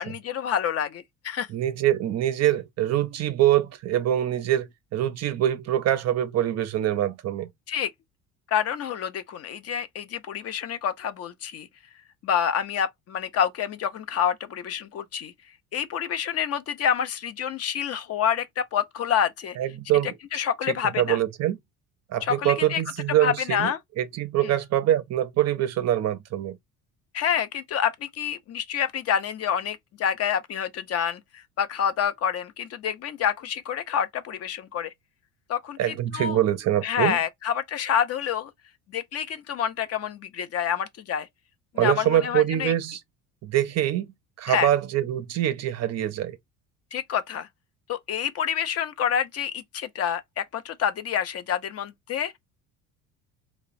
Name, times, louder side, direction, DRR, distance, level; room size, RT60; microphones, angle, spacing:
voice 1, 0.0-1.5 7.7-7.9 8.5-11.7 12.2-15.3 15.7-19.6 20.3-21.2 22.2-22.8 23.2-23.8 24.4-24.5 27.1-34.9 35.5-36.4 36.8-38.5 38.9-41.3 41.8-42.7 44.5-44.7 46.9-47.5 47.9-52.3, left 8 dB, 40° left, 0.4 m, -27 dB
voice 2, 1.5-7.5 19.6-20.1 20.7-21.6 22.1-26.6 35.8-37.2 41.8-43.0 43.4-44.1 44.4-46.4, right 12 dB, 45° right, 0.5 m, -24 dB
2.9 x 2.1 x 2.4 m
supercardioid pair, 80°, 39 cm